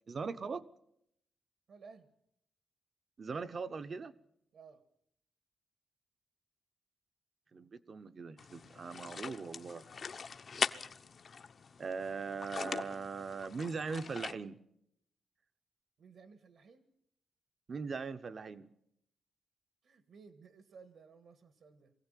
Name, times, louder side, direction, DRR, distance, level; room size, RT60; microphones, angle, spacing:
voice 1, 0.1-0.6 3.2-4.1 7.5-9.8 11.8-14.6 17.7-18.7, right 5 dB, 35° right, 0.9 m, -40 dB
voice 2, 1.7-2.1 4.5-4.8 16.0-16.8 19.8-21.9, right 5 dB, 60° right, 1.8 m, -57 dB
sound 1, 8.4-14.3, left 5 dB, 40° left, 0.8 m, -41 dB
23.5 x 16.5 x 9.1 m
wide cardioid pair, 180°, 0 cm